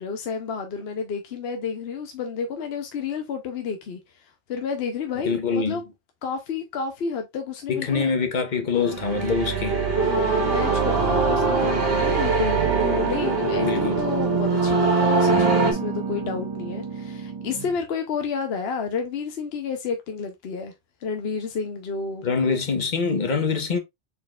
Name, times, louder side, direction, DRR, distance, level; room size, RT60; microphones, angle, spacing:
voice 1, 0.0-4.0 4.5-5.9 6.2-8.1 10.0-20.7 21.0-22.3, left 5 dB, 70° left, 0.9 m, -30 dB
voice 2, 5.2-5.8 7.7-9.8 13.6-14.1 22.2-23.8, left 5 dB, 45° left, 1.1 m, -24 dB
sound 1, 8.8-15.7, right 4 dB, 65° right, 1.5 m, -22 dB
sound 2, 10.9-12.0 12.6-14.9 15.3-17.9, right 4 dB, 30° right, 1.0 m, -33 dB
4.3 x 4.2 x 2.3 m
omnidirectional pair, 1.1 m